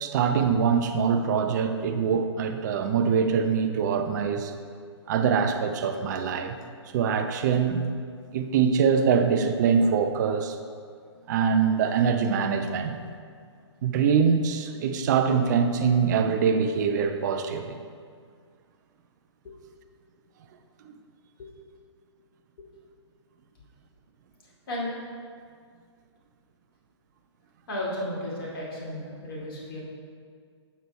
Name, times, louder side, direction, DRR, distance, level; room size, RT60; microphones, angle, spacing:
voice 1, 0.0-4.5 5.1-6.6 6.9-7.9 8.3-10.6 11.3-13.0 13.8-17.8 20.8-21.0, right 6 dB, 40° right, 8 dB, 0.6 m, -24 dB
voice 2, 27.7-29.8, left 1 dB, 50° left, -5 dB, 2.2 m, -34 dB
8.3 x 6.1 x 4.2 m, 2.1 s
figure-of-eight pair, 130°, 15 cm